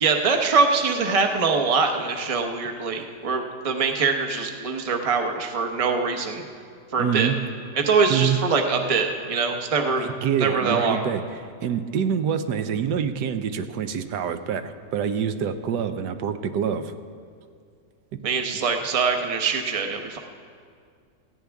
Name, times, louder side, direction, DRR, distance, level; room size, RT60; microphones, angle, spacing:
voice 1, 0.0-6.4 6.9-7.3 7.8-10.1 10.4-11.0 18.2-20.2, right 4 dB, 30° right, 4 dB, 0.8 m, -23 dB
voice 2, 7.0-7.4 8.1-8.4 10.0-11.2 11.6-16.9, right 8 dB, 80° right, 9 dB, 1.3 m, -26 dB
18.0 x 15.5 x 3.5 m, 2.2 s
omnidirectional pair, 1.8 m